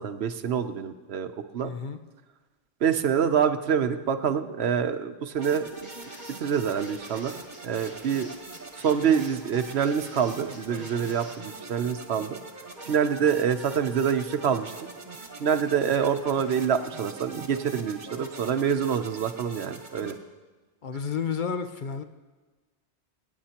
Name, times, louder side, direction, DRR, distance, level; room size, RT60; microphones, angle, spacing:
voice 1, 0.0-1.7 2.8-5.7 6.4-7.3 7.6-8.3 8.8-12.4 12.8-14.9 15.4-20.2, right 7 dB, 70° right, 9 dB, 1.0 m, -26 dB
voice 2, 1.6-2.0 20.8-22.0, left 6 dB, 50° left, 7 dB, 0.8 m, -31 dB
sound 1, 5.3-20.1, right 2 dB, 45° right, 1.3 m, -43 dB
sound 2, 5.8-11.3, equal, 10° left, 3.4 m, -48 dB
25.0 x 9.6 x 2.9 m, 1.3 s
omnidirectional pair, 1.1 m